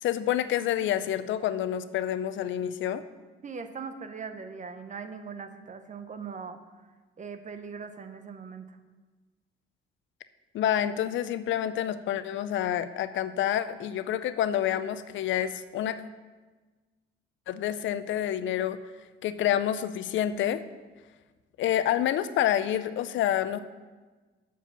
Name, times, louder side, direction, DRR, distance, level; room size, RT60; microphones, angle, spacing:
voice 1, 0.0-3.0 10.5-16.0 17.5-18.8 19.2-20.6 21.6-23.6, left 11 dB, 75° left, 13 dB, 0.5 m, -28 dB
voice 2, 3.4-6.6 7.2-8.8, right 5 dB, 40° right, 9 dB, 0.8 m, -40 dB
7.1 x 4.9 x 7.0 m, 1.3 s
cardioid pair, 90°, 20 cm